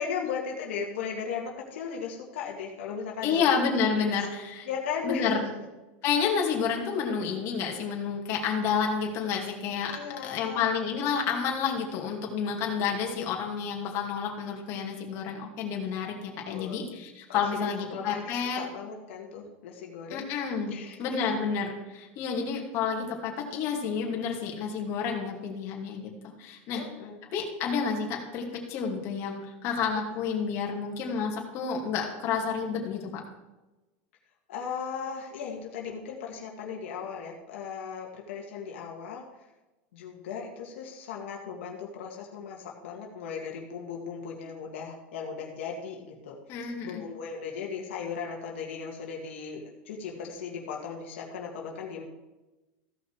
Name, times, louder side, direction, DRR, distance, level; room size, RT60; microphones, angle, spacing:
voice 1, 0.0-3.5 4.7-5.3 9.9-10.7 13.0-13.3 16.5-16.9 17.3-20.3 20.7-21.0 26.7-27.2 29.9-30.1 34.5-39.2 39.9-46.4 46.8-52.0, left 6 dB, 85° left, -1 dB, 2.0 m, -37 dB
voice 2, 3.2-4.7 5.0-5.5 6.0-10.0 10.2-18.6 20.1-26.1 26.4-26.8 27.3-33.2 46.5-47.0, left 6 dB, 45° left, 0 dB, 2.5 m, -30 dB
15.5 x 5.8 x 4.8 m, 1.1 s
supercardioid pair, 140°, 6 cm